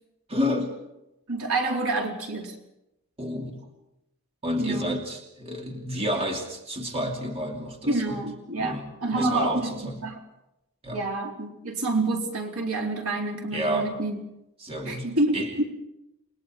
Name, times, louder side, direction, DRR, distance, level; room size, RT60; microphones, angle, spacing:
voice 1, 0.3-0.8 3.2-3.6 4.4-8.2 8.6-8.8 9.1-10.0 10.8-11.0 13.5-13.9 14.6-15.1 15.3-15.5, equal, 25° right, 1 dB, 3.0 m, -30 dB
voice 2, 1.3-2.5 4.6-4.9 7.9-10.2 10.9-14.2 14.9-15.6, right 2 dB, 80° right, 1 dB, 4.3 m, -28 dB
29.0 x 21.5 x 4.6 m, 0.88 s
head